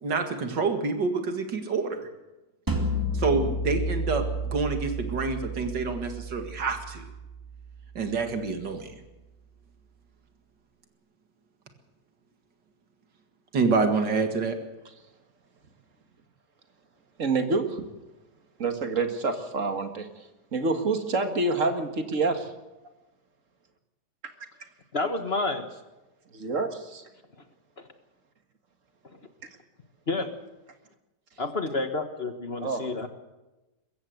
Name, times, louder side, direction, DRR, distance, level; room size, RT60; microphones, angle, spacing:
voice 1, 0.0-2.1 3.1-7.1 8.0-8.9 13.5-14.6, right 4 dB, 85° right, 6 dB, 2.6 m, -27 dB
sound 1, 2.7-7.7, equal, 10° right, 2.3 m, -31 dB
voice 2, 17.2-17.9 18.6-20.1 20.5-22.5 26.3-27.0 32.6-32.8, right 3 dB, 50° right, 7 dB, 2.1 m, -27 dB
voice 3, 24.9-25.8 27.8-27.9 30.1-30.3 31.4-33.1, left 3 dB, 40° left, 7 dB, 1.5 m, -30 dB
22.0 x 15.5 x 7.9 m, 1.0 s
omnidirectional pair, 1.8 m